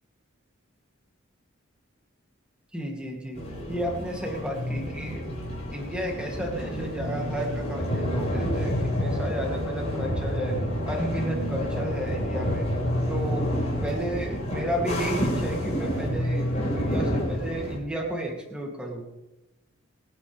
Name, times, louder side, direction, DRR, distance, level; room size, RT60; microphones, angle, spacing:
voice 1, 2.7-3.4 3.7-5.2 5.7-10.6 10.9-12.7 13.1-13.5 13.8-19.0, right 1 dB, 5° right, -1 dB, 3.0 m, -32 dB
sound 1, 3.4-17.8, equal, 30° left, 6.6 m, -29 dB
26.5 x 9.8 x 3.6 m, 0.97 s
head